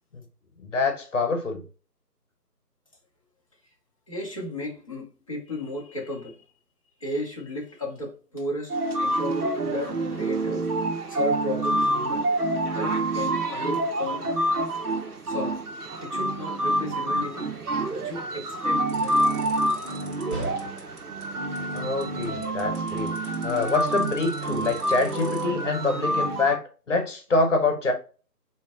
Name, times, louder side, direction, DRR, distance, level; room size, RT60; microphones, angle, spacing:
voice 1, 0.6-1.6 21.7-23.1 23.4-27.9, left 3 dB, 50° left, 1.3 m, -26 dB
voice 2, 4.1-6.4 7.0-10.7 11.1-12.3 12.7-14.3 15.3-15.6 16.0-17.5 17.9-19.4, left 1 dB, 20° left, 0.9 m, -34 dB
sound 1, 8.7-26.6, right 1 dB, 65° right, 1.0 m, -27 dB
sound 2, 18.9-25.5, right 2 dB, 45° right, 1.6 m, -44 dB
4.2 x 3.1 x 3.6 m
figure-of-eight pair, 160°, 48 cm